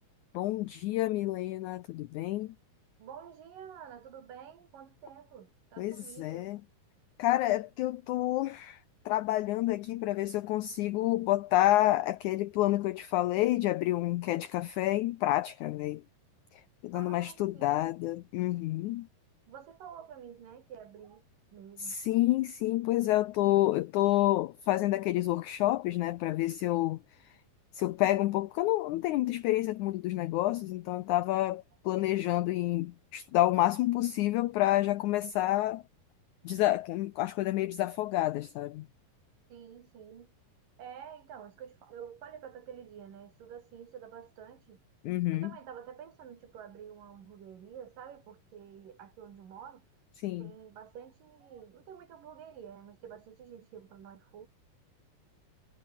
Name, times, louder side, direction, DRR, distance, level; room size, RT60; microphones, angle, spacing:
voice 1, 0.3-2.5 5.8-6.6 7.2-8.8 9.1-16.0 16.5-19.1 21.8-27.0 27.7-35.8 36.4-38.9 45.0-45.5 50.2-50.5, left 15 dB, 75° left, 1.8 m, -29 dB
voice 2, 3.0-6.5 16.9-17.9 19.5-21.2 21.5-22.0 39.5-40.3 40.8-44.8 45.3-49.8 50.4-54.5, right 8 dB, 70° right, 4.3 m, -49 dB
omnidirectional pair, 4.1 m